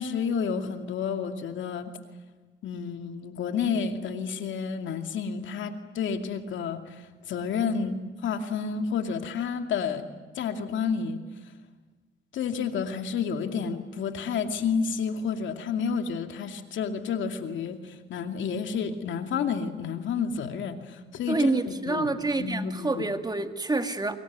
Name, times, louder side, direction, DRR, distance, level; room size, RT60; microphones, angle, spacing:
voice 1, 0.0-1.9 2.6-10.1 10.3-11.2 12.3-21.6 21.9-22.1 22.4-23.0, left 6 dB, 70° left, 6 dB, 2.5 m, -30 dB
voice 2, 21.3-24.2, right 2 dB, 20° right, 7 dB, 2.1 m, -27 dB
25.0 x 22.5 x 9.5 m, 1.3 s
cardioid pair, 90°, 20 cm